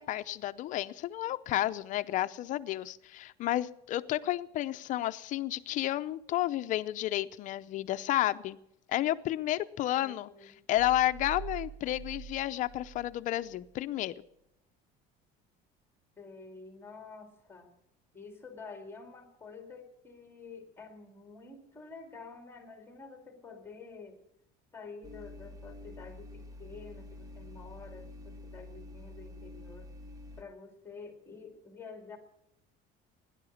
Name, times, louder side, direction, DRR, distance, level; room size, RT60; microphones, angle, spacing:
voice 1, 0.0-8.6 8.9-14.1, left 14 dB, 40° left, 12 dB, 0.6 m, -31 dB
voice 2, 9.9-10.6 16.2-17.7 18.1-24.2 24.7-29.9 30.4-32.2, left 4 dB, 10° left, 5 dB, 2.1 m, -49 dB
sound 1, 10.7-13.7, right 7 dB, 65° right, 0.8 m, -45 dB
sound 2, 25.0-30.4, left 2 dB, 20° right, 1.0 m, -48 dB
17.5 x 11.0 x 7.2 m, 0.80 s
cardioid pair, 170°, 19 cm